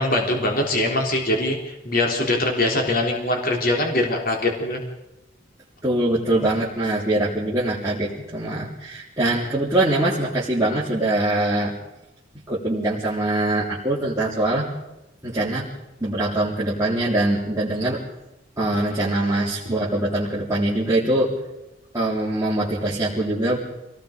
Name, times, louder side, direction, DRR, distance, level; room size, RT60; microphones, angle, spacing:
voice 1, 0.0-4.8, left 1 dB, 50° left, 1 dB, 3.6 m, -22 dB
voice 2, 5.8-11.7 12.5-14.7 15.2-15.7 16.0-18.0 18.6-21.4 21.9-23.6, right 1 dB, 15° right, -7 dB, 3.7 m, -23 dB
27.5 x 18.5 x 5.3 m, 0.93 s
head